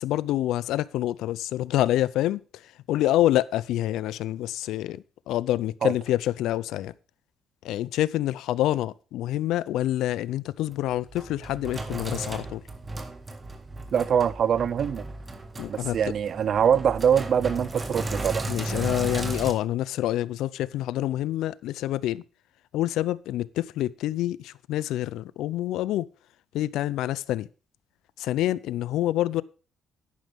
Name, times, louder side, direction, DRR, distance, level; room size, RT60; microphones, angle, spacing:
voice 1, 0.0-6.9 7.6-12.6 15.6-16.0 18.4-22.2 22.7-26.1 26.5-27.5 28.2-29.4, left 14 dB, 90° left, 0.4 m, -27 dB
Sink (filling or washing), 10.7-19.5, right 2 dB, 25° right, 1.8 m, -35 dB
voice 2, 13.9-15.1 15.7-18.4, right 8 dB, 60° right, 0.5 m, -23 dB
11.0 x 9.3 x 3.5 m
cardioid pair, 90°, 0 cm